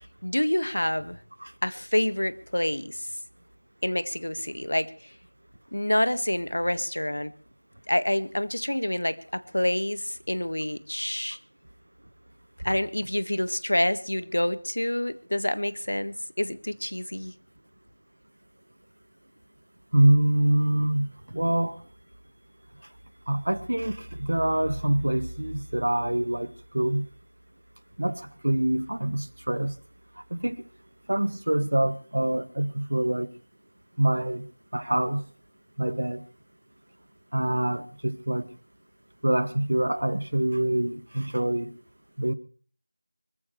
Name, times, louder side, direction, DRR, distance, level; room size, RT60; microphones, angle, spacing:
voice 1, 0.2-1.2 1.6-3.1 3.8-5.1 5.7-7.3 7.9-11.4 12.6-17.3, left 1 dB, 85° left, 12 dB, 1.6 m, -27 dB
voice 2, 19.9-21.8 22.8-22.9 23.3-27.1 28.0-29.8 30.1-30.6 31.1-33.3 34.0-34.5 34.7-35.3 35.8-36.2 37.3-38.5 39.2-41.8 42.2-42.3, right 1 dB, 60° right, 15 dB, 1.2 m, -25 dB
25.0 x 14.5 x 3.2 m, 0.43 s
figure-of-eight pair, 180°, 0 cm